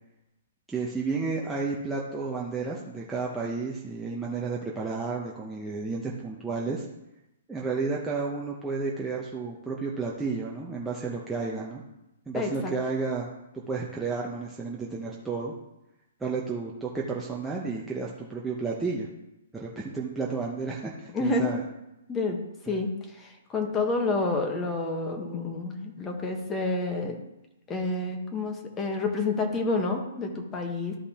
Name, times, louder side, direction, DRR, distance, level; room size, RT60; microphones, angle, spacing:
voice 1, 0.7-6.8 7.5-11.8 12.3-13.3 13.7-15.5 16.2-19.1 19.5-21.6 22.7-22.8, right 4 dB, 5° right, -4 dB, 0.8 m, -32 dB
voice 2, 12.3-12.7 21.1-21.6 22.1-22.4 22.7-22.9 23.2-27.2 27.7-31.0, left 3 dB, 15° left, 2 dB, 1.2 m, -29 dB
13.0 x 5.1 x 2.9 m, 0.92 s
hypercardioid pair, 160°, 0 cm